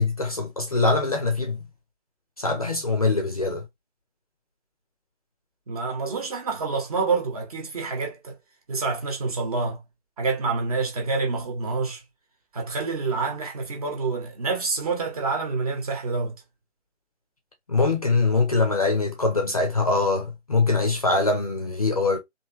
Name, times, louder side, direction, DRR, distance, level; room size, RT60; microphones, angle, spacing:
voice 1, 0.0-1.6 2.4-3.6 17.7-22.2, left 3 dB, 30° left, 0.6 m, -23 dB
voice 2, 5.7-8.4 8.7-9.8 10.2-12.0 12.5-16.4, right 4 dB, 30° right, 1.1 m, -27 dB
3.2 x 2.7 x 2.9 m
figure-of-eight pair, 150°, 36 cm